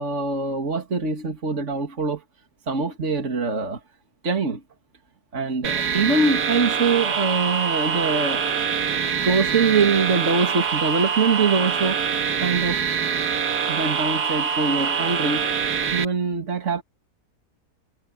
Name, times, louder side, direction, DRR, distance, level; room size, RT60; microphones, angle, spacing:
voice 1, 0.0-2.2 2.7-3.8 4.2-4.6 5.3-8.4 9.2-12.0 12.4-12.8 13.7-15.5 15.9-16.8, right 4 dB, 50° right, 2.5 m, -23 dB
sound 1, 5.6-16.1, right 6 dB, 80° right, 2.0 m, -24 dB
omnidirectional pair, 1.7 m